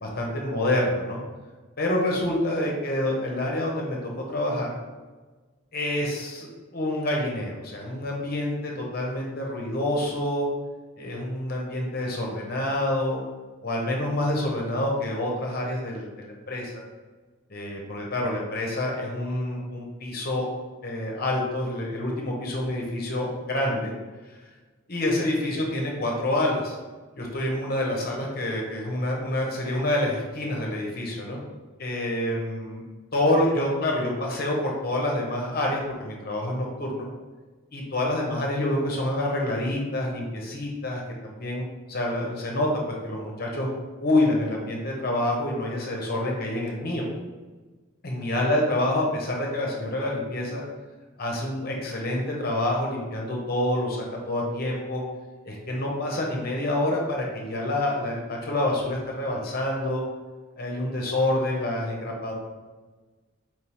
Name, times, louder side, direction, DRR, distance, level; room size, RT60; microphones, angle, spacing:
voice 1, 0.0-1.2 1.8-4.7 5.7-10.5 11.0-13.2 13.6-16.8 17.5-20.5 20.8-23.9 24.9-26.8 27.2-31.4 31.8-32.8 33.1-37.1 37.7-43.7 44.0-47.1 48.0-50.6 51.2-55.0 55.5-60.0 60.6-62.3, left 1 dB, 50° left, -1 dB, 0.9 m, -27 dB
4.6 x 3.6 x 3.0 m, 1.3 s
head